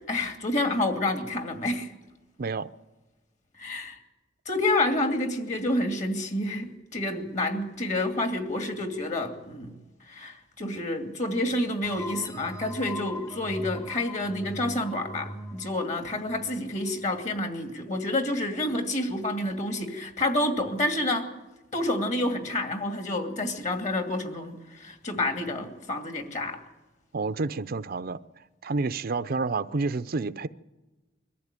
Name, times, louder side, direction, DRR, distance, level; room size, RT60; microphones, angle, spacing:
voice 1, 0.1-1.9 3.6-4.0 4.5-9.7 10.0-21.3 21.7-26.6, left 1 dB, 40° left, 2.5 m, -29 dB
sound 1, 11.8-17.3, left 1 dB, 20° left, 1.0 m, -41 dB
voice 2, 27.1-28.2 28.6-30.5, right 3 dB, 55° right, 0.6 m, -29 dB
22.5 x 14.5 x 9.0 m
head